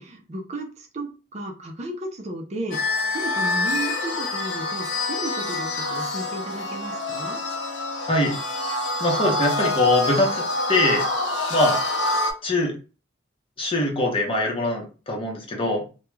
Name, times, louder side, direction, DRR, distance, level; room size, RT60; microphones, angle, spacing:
voice 1, 0.0-7.4, right 1 dB, 40° right, 2 dB, 0.5 m, -34 dB
sound 1, 2.7-12.3, left 2 dB, 85° left, 0.7 m, -26 dB
voice 2, 9.0-10.4 10.7-11.0 11.5-11.8 12.4-12.7 13.6-15.8, left 1 dB, 30° left, 0 dB, 0.8 m, -22 dB
2.3 x 2.2 x 3.1 m, 0.33 s
head